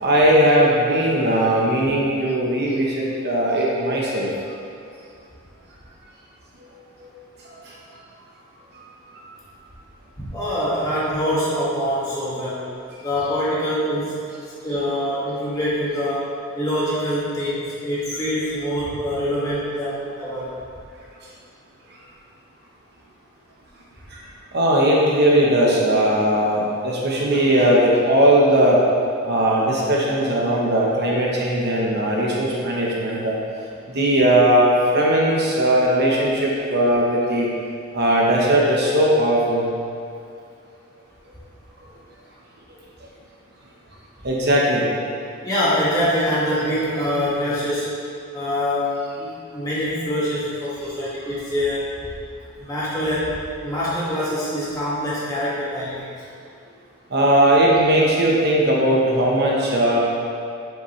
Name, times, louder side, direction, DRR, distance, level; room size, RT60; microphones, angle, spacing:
voice 1, 0.0-4.6 6.6-6.7 7.0-7.1 7.6-7.7 8.7-8.9 9.1-9.2 24.1-24.2 24.5-28.8 29.2-33.3 33.9-37.5 37.9-39.7 44.2-44.9 57.1-60.0, right 1 dB, 50° right, -3 dB, 1.0 m, -18 dB
voice 2, 10.2-12.7 13.0-14.2 14.6-20.5 45.4-48.0 48.3-51.9 52.6-53.4 53.6-56.1, equal, 15° left, -9 dB, 1.9 m, -24 dB
8.0 x 7.0 x 3.2 m, 2.4 s
head